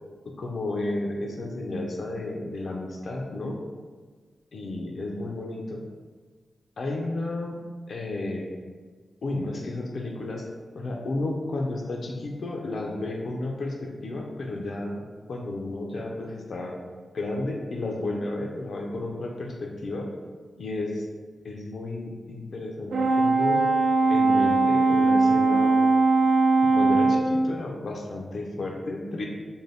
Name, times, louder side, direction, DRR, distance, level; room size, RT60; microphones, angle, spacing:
voice 1, 0.3-3.6 4.5-5.8 6.8-7.6 7.9-8.5 9.2-10.4 10.7-16.8 17.1-20.1 20.6-21.1 21.4-23.7 24.1-25.7 26.7-29.3, left 2 dB, 65° left, 0 dB, 0.4 m, -32 dB
Brass instrument, 22.9-27.3, right 3 dB, 85° right, 0.4 m, -20 dB
2.6 x 2.1 x 3.2 m, 1.4 s
wide cardioid pair, 120°, 0 cm